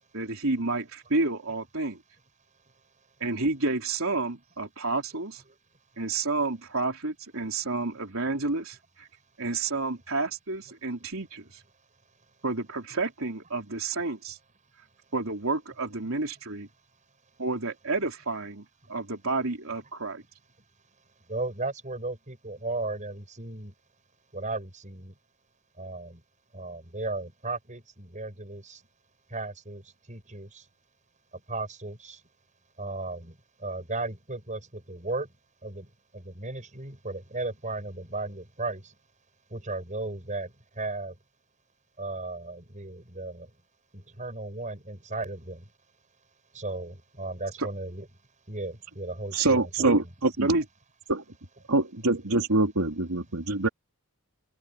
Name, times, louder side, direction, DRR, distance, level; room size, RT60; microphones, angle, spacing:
voice 1, 0.1-2.0 3.2-5.4 6.0-9.1 9.4-11.6 12.4-14.4 15.1-16.7 17.4-20.2 47.6-47.7 49.8-50.0 50.4-50.6, right 3 dB, 70° right, 3.9 m, -30 dB
voice 2, 21.3-23.7 24.3-25.1 25.8-26.2 26.5-28.8 29.3-30.7 31.5-32.2 32.8-35.3 35.6-38.9 39.5-41.2 42.0-43.5 43.9-45.7 46.5-48.1 48.5-49.9, right 2 dB, 35° right, 6.3 m, -35 dB
voice 3, 49.3-50.6 51.1-51.2 51.7-53.7, right 2 dB, 90° right, 2.8 m, -25 dB
head